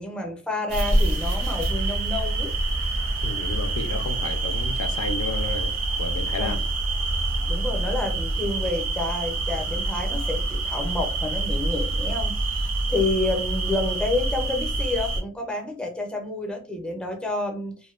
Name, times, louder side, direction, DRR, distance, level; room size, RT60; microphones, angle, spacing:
voice 1, 0.0-2.5 6.4-6.6 7.5-17.8, left 2 dB, 5° left, 0.4 m, -29 dB
sound 1, 0.7-15.2, right 2 dB, 85° right, 0.6 m, -26 dB
voice 2, 3.2-5.7 6.0-6.6 13.0-13.1, left 4 dB, 70° left, 0.4 m, -32 dB
2.5 x 2.1 x 2.3 m
head